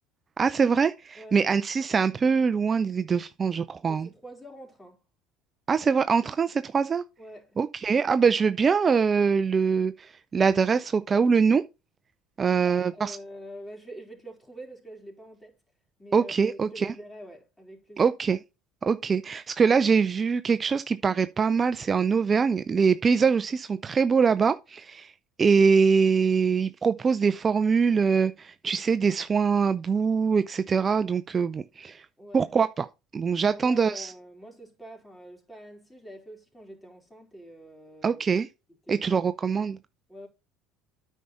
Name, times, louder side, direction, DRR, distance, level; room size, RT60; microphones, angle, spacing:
voice 1, 0.4-4.1 5.7-7.0 7.6-11.6 12.4-13.2 16.1-16.9 18.0-18.4 18.8-25.1 25.4-32.1 32.3-32.9 33.1-34.1 38.0-38.5 38.9-39.8, right 5 dB, 30° right, 0.5 m, -23 dB
voice 2, 3.9-5.0 7.2-7.6 12.5-15.6 16.0-18.1 32.2-32.6 33.4-38.2 38.7-39.3 40.1-40.3, equal, 10° left, 4.1 m, -45 dB
9.3 x 5.6 x 4.2 m
hypercardioid pair, 80°, 0 cm